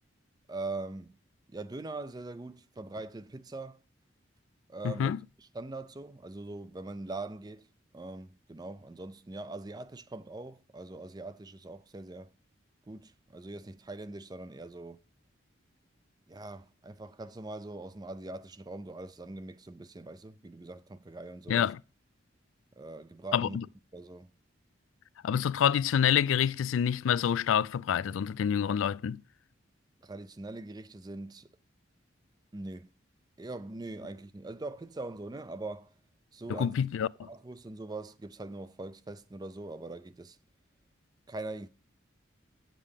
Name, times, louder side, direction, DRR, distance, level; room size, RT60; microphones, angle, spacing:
voice 1, 0.5-1.2 1.5-3.8 4.7-5.1 5.4-7.7 7.9-12.3 12.9-15.0 16.3-21.7 22.8-23.6 23.9-24.3 30.0-31.5 32.5-32.9 33.4-35.9 36.3-36.8 37.2-40.4 41.3-41.7, right 2 dB, 20° right, 0.4 m, -42 dB
voice 2, 4.8-5.2 21.5-21.8 23.3-23.6 25.2-29.2 36.5-37.3, left 8 dB, 85° left, 0.3 m, -27 dB
8.4 x 7.6 x 3.4 m
head